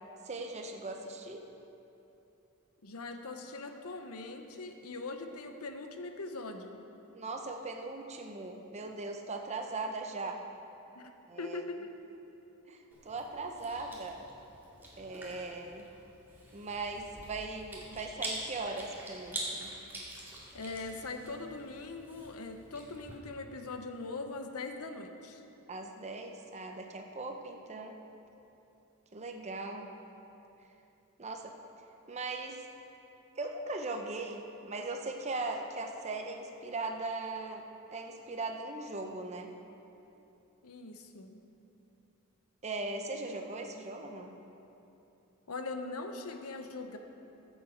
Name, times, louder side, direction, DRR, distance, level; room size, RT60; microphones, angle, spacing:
voice 1, 0.2-1.5 7.1-10.4 11.3-11.6 12.7-14.3 15.0-15.8 16.5-19.7 25.7-27.9 29.1-29.9 31.2-31.5 32.1-32.7 33.4-37.6 37.9-39.5 42.6-44.3, right 3 dB, 30° right, 4 dB, 0.7 m, -39 dB
voice 2, 2.8-6.8 10.9-11.1 11.4-11.8 20.5-25.4 40.6-41.4 45.5-47.0, left 3 dB, 85° left, 6 dB, 0.9 m, -41 dB
Chewing mastication, 12.9-23.1, right 1 dB, 10° right, 2.0 m, -45 dB
14.5 x 7.4 x 5.1 m, 2.9 s
head